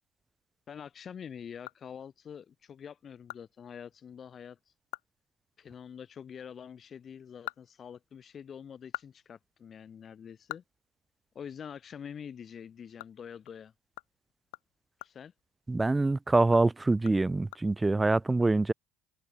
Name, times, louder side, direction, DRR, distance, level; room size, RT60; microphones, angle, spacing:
voice 1, 0.7-4.6 5.6-10.6 11.3-13.7 15.0-15.3, left 7 dB, 45° left, 3.2 m, -45 dB
sound 1, 1.6-2.4 2.8-2.9 3.3-3.4 3.8-3.9 4.3-4.4 4.8-5.2 5.4-5.6 7.1-8.3 8.7-11.6 12.0-12.1 12.5-16.0 16.4-18.0, left 22 dB, 80° left, 3.5 m, -47 dB
voice 2, 15.7-18.7, right 2 dB, 15° right, 0.6 m, -25 dB
hypercardioid pair, 70°, 0 cm